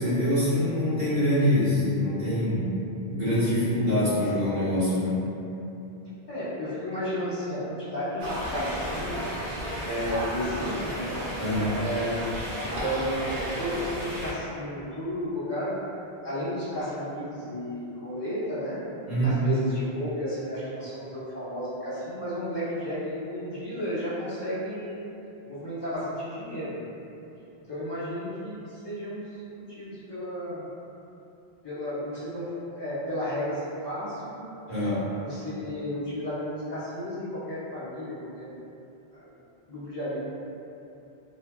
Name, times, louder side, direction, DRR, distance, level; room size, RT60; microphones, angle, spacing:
voice 1, 0.0-2.7 3.0-5.2 11.4-11.8 19.1-19.4 34.7-35.1, left 1 dB, 45° right, -15 dB, 1.4 m, -25 dB
voice 2, 6.3-9.4 9.8-11.1 11.8-12.3 12.6-15.8 16.2-18.8 19.2-25.1 25.5-26.8 27.7-30.6 31.6-34.3 35.2-38.6 39.1-39.3 39.7-40.2, equal, 25° left, -12 dB, 0.7 m, -33 dB
sound 1, 8.2-14.3, equal, 70° right, 0.8 m, -33 dB
2.8 x 2.3 x 2.2 m, 2.8 s
omnidirectional pair, 1.1 m